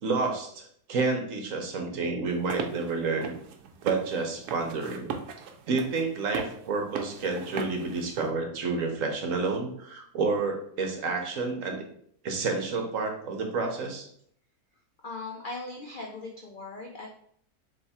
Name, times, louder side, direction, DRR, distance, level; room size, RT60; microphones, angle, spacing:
voice 1, 0.0-3.3 3.8-5.2 5.7-11.8 12.2-14.1, right 4 dB, 60° right, 2 dB, 1.2 m, -29 dB
sound 1, 2.3-8.3, right 6 dB, 85° right, 1.1 m, -39 dB
voice 2, 15.0-17.1, left 3 dB, 85° left, 0 dB, 0.4 m, -39 dB
3.4 x 3.4 x 4.2 m, 0.65 s
omnidirectional pair, 1.6 m